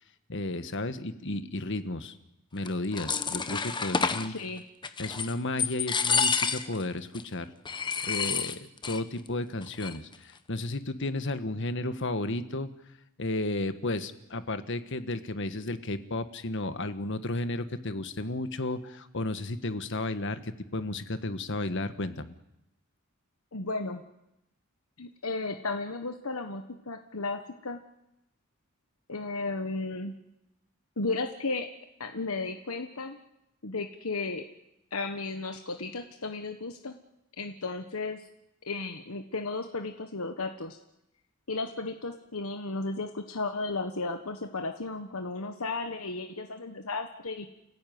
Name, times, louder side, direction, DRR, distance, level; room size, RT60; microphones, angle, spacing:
voice 1, 0.3-2.2 2.5-4.3 5.0-7.5 8.1-12.7 13.2-22.3, left 2 dB, 60° left, 11 dB, 1.5 m, -33 dB
sound 1, 2.7-4.3 4.8-5.3 5.6-6.8 7.1-7.2 7.6-9.0 9.3-9.4 9.6-10.1, left 5 dB, 20° left, 1.1 m, -29 dB
voice 2, 4.3-4.6 23.5-24.0 25.0-27.8 29.1-30.1 31.0-31.7 32.0-33.2 33.6-34.4 34.9-36.9 37.4-38.3 38.7-40.8 41.5-47.5, left 3 dB, 85° left, 6 dB, 1.4 m, -34 dB
29.5 x 15.5 x 9.5 m, 0.87 s
head